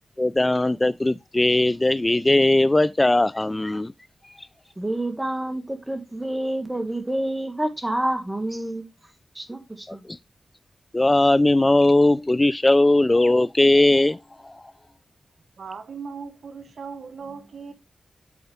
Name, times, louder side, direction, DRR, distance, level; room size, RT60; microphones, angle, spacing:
voice 1, 0.2-3.9 9.9-10.2 10.9-14.2 14.4-14.6, left 2 dB, 25° left, 0.4 m, -19 dB
voice 2, 4.8-8.9 9.4-10.0, right 1 dB, 15° right, 1.9 m, -28 dB
voice 3, 15.6-17.7, right 5 dB, 75° right, 1.2 m, -38 dB
8.0 x 4.8 x 3.4 m
cardioid pair, 40°, 0 cm